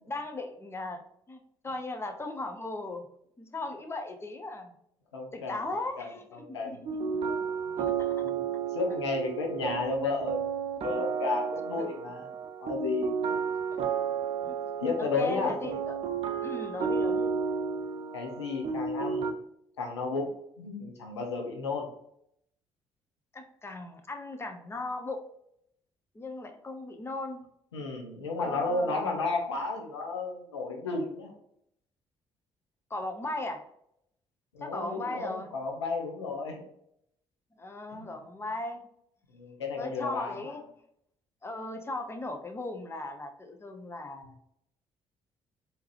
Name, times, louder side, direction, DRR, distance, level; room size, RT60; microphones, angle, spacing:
voice 1, 0.1-1.0 1.3-1.4 1.6-3.0 3.4-4.7 5.3-6.8 7.1-7.4 7.8-8.1 8.9-9.1 9.7-9.8 11.2-11.3 11.8-11.9 13.7-13.9 14.4-14.6 15.0-15.9 16.4-17.3 23.3-25.2 26.1-27.4 28.4-29.2 32.9-33.6 34.6-35.5 37.6-38.8 39.8-40.6 41.4-44.4, left 2 dB, 15° left, 5 dB, 0.6 m, -37 dB
voice 2, 5.1-5.6 6.0-6.8 7.7-7.8 8.2-8.4 8.7-10.4 10.8-12.3 12.6-13.1 14.8-15.6 18.1-19.3 19.8-21.9 27.7-31.3 34.5-36.6 37.9-38.2 39.3-40.6, left 3 dB, 80° left, 1 dB, 0.6 m, -33 dB
sound 1, 6.9-19.3, right 6 dB, 45° right, 0.5 m, -32 dB
3.7 x 2.8 x 3.0 m, 0.73 s
figure-of-eight pair, 45°, 14 cm